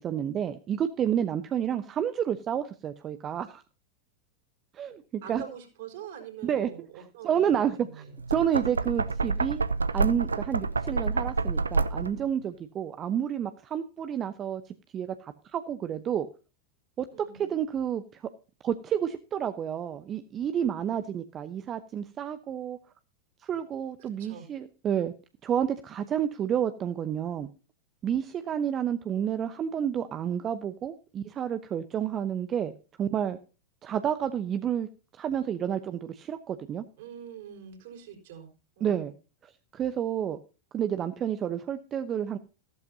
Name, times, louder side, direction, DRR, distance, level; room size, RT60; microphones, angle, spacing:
voice 1, 0.0-3.6 4.7-5.4 6.4-6.7 7.0-9.6 9.9-16.3 17.0-18.2 18.6-22.8 23.4-25.1 25.4-27.5 28.0-32.7 33.0-33.4 33.8-34.9 35.2-36.8 38.8-39.1 39.7-40.4 40.7-42.4, right 9 dB, 30° right, 11 dB, 0.8 m, -30 dB
voice 2, 5.2-8.2 17.1-17.5 24.0-24.5 28.7-28.8 37.0-39.1, right 8 dB, 55° right, 3 dB, 4.7 m, -45 dB
Knock, 8.1-12.3, right 4 dB, 75° right, 0.6 m, -28 dB
14.5 x 13.0 x 2.7 m, 0.34 s
figure-of-eight pair, 90°, 0 cm